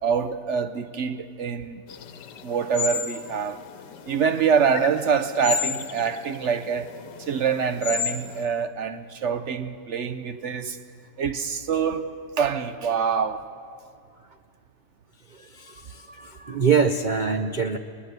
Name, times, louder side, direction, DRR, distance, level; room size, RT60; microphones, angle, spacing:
voice 1, 0.0-1.8 2.4-3.6 4.1-6.9 7.2-10.8 11.2-12.1 12.4-13.5, right 6 dB, 55° right, 0.8 m, -25 dB
sound 1, 1.9-8.4, left 8 dB, 85° left, 1.5 m, -33 dB
voice 2, 15.3-17.8, right 5 dB, 80° right, 0.4 m, -24 dB
22.5 x 19.0 x 8.1 m
omnidirectional pair, 1.8 m